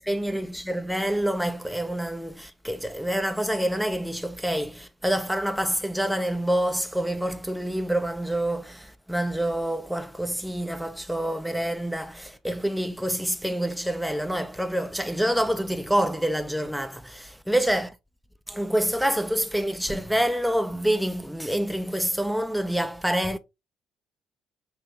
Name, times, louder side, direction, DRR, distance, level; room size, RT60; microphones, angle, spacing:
voice 1, 0.0-17.9 18.5-23.4, right 1 dB, ahead, 0.5 m, -27 dB
5.2 x 2.7 x 2.7 m
figure-of-eight pair, 45°, 0 cm